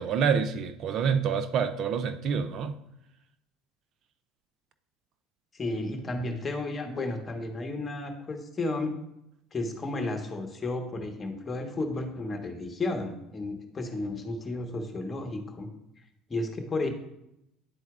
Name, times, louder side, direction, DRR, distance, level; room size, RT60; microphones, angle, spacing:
voice 1, 0.0-2.8, right 6 dB, 55° right, 0.4 m, -27 dB
voice 2, 5.5-8.9 9.5-15.7 16.3-16.9, left 2 dB, 30° left, 1.2 m, -33 dB
10.0 x 4.4 x 2.4 m
hypercardioid pair, 80°, 0 cm